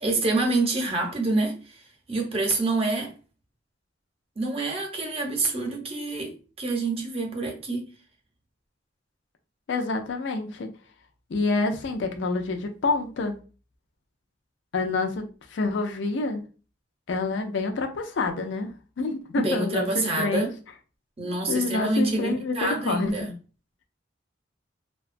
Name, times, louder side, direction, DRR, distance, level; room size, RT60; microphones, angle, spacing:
voice 1, 0.0-1.8 2.1-3.1 4.4-7.9 19.4-20.5 21.2-23.3, right 2 dB, 30° right, 0.7 m, -27 dB
voice 2, 9.7-10.7 11.3-13.4 14.7-16.4 17.1-20.5 21.2-23.1, left 3 dB, 65° left, 0.4 m, -27 dB
2.8 x 2.2 x 2.5 m
head